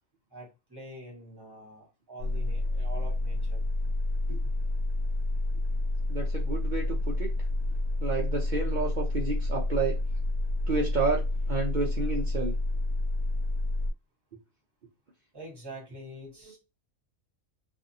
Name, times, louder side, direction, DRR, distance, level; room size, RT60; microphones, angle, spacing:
voice 1, 0.3-3.7 4.3-4.4 15.3-16.6, right 1 dB, 20° right, -2 dB, 1.1 m, -45 dB
sound 1, 2.2-13.9, left 2 dB, 85° right, 1.1 m, -29 dB
voice 2, 6.1-7.3 8.0-10.0 10.7-12.5 16.5-16.6, right 4 dB, 65° right, -1 dB, 0.4 m, -30 dB
2.5 x 2.5 x 2.6 m, 0.27 s
omnidirectional pair, 1.4 m